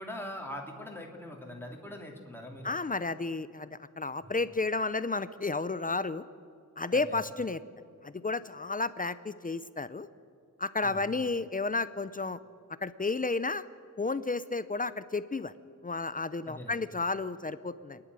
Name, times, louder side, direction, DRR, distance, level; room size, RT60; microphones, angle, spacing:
voice 1, 0.0-2.7 6.9-7.2 10.8-11.0 16.5-16.8, left 1 dB, 5° left, 0 dB, 3.0 m, -42 dB
voice 2, 2.6-3.7 4.0-6.2 6.8-7.6 8.0-10.1 10.6-12.4 12.8-13.6 14.0-15.5 15.8-18.0, left 3 dB, 25° left, 14 dB, 0.5 m, -32 dB
28.5 x 10.5 x 9.6 m, 2.3 s
wide cardioid pair, 130°, 31 cm